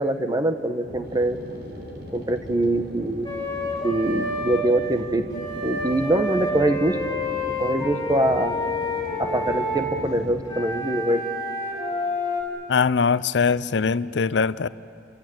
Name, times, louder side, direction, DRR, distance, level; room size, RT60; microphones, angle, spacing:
voice 1, 0.0-1.4 2.1-3.3 3.8-5.2 5.6-7.0 7.6-8.6 9.2-11.2, right 1 dB, 20° right, 8 dB, 1.2 m, -23 dB
sound 1, 0.8-10.4, equal, 70° right, 4.3 m, -39 dB
Wind instrument woodwind instrument, 3.2-4.6 5.3-9.9 10.5-12.4, left 1 dB, 20° left, 5.2 m, -29 dB
voice 2, 12.7-14.7, left 5 dB, 80° left, 17 dB, 0.6 m, -21 dB
29.0 x 23.0 x 7.9 m, 2.5 s
head